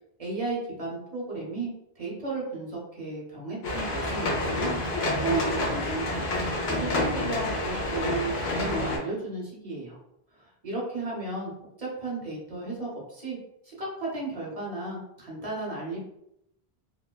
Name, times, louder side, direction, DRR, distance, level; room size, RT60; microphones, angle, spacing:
voice 1, 0.2-4.8 5.2-6.3 6.6-10.0 10.4-11.5 11.8-13.4 13.6-16.0, right 3 dB, 40° right, -4 dB, 0.9 m, -34 dB
sound 1, 3.6-9.0, left 1 dB, 80° left, 0.9 m, -28 dB
3.0 x 2.1 x 2.2 m, 0.79 s
omnidirectional pair, 1.1 m